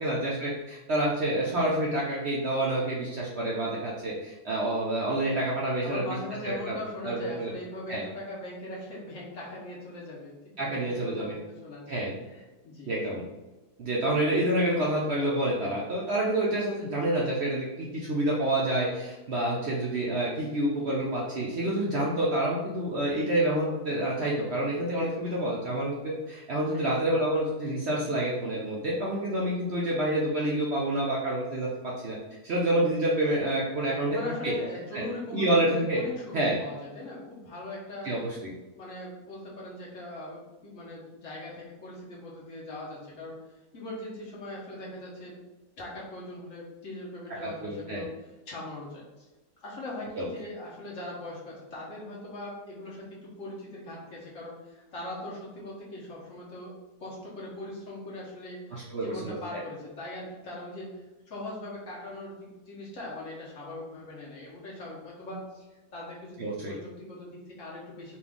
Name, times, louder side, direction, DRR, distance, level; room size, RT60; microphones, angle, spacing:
voice 1, 0.0-6.0 6.4-6.8 7.0-7.5 7.9-8.0 10.6-11.3 11.9-12.1 12.9-13.2 13.8-32.2 32.4-34.2 34.4-34.5 34.9-35.0 35.3-36.0 36.3-36.6 38.0-38.4 47.4-48.0 50.2-50.3 58.7-59.6 66.4-66.7, right 1 dB, 65° right, -4 dB, 0.6 m, -28 dB
voice 2, 5.8-12.0 12.3-12.9 26.7-26.9 33.8-45.4 45.8-48.1 48.5-49.3 49.6-65.7 65.9-68.2, left 1 dB, 50° left, -5 dB, 1.4 m, -40 dB
4.2 x 2.5 x 3.5 m, 1.1 s
omnidirectional pair, 1.8 m